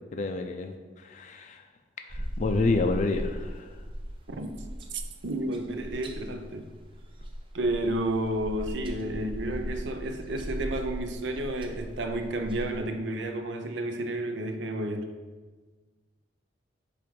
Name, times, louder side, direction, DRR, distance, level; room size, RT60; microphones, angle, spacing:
voice 1, 0.1-1.6 2.1-3.7, left 3 dB, 40° left, 5 dB, 0.4 m, -29 dB
sound 1, 2.1-12.8, equal, 30° right, 0.5 m, -38 dB
voice 2, 4.9-6.7 7.5-15.1, right 1 dB, 80° right, 6 dB, 0.6 m, -31 dB
7.5 x 2.5 x 5.2 m, 1.3 s
head